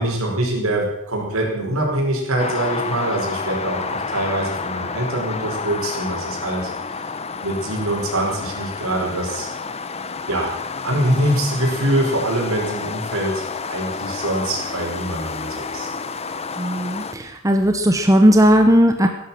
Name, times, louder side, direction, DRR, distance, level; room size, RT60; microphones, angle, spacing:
voice 1, 0.0-6.7 7.4-9.5 10.3-10.5 10.8-15.9, right 1 dB, 90° right, -1 dB, 5.3 m, -24 dB
sound 1, 2.4-17.1, left 4 dB, 30° left, 0.9 m, -30 dB
voice 2, 16.6-19.1, equal, 15° right, 5 dB, 1.0 m, -16 dB
15.5 x 11.5 x 7.4 m, 0.81 s
head